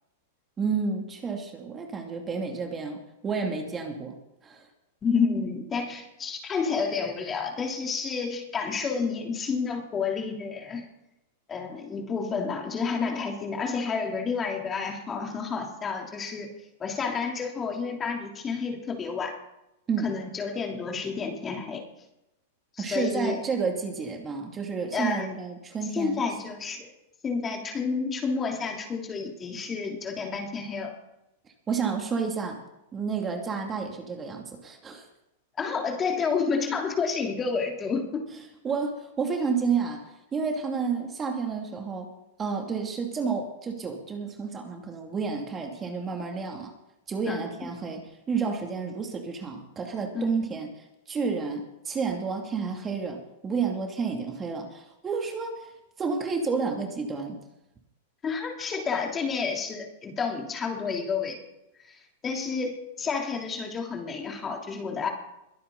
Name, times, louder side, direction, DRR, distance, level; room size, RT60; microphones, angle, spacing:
voice 1, 0.6-4.2 4.4-4.7 19.9-20.1 22.8-26.2 31.7-32.6 32.9-35.1 38.6-42.1 42.4-46.7 47.1-55.7 56.0-57.4, right 5 dB, 25° right, 2 dB, 2.6 m, -30 dB
voice 2, 5.0-10.8 11.5-16.5 16.8-19.3 20.0-21.8 22.8-23.4 24.9-25.3 25.9-26.9 27.2-30.9 35.6-38.3 47.3-47.5 50.1-50.3 58.2-61.4 61.8-65.1, left 5 dB, 25° left, 1 dB, 3.3 m, -30 dB
22.5 x 10.0 x 4.0 m, 0.87 s
hypercardioid pair, 110°, 0 cm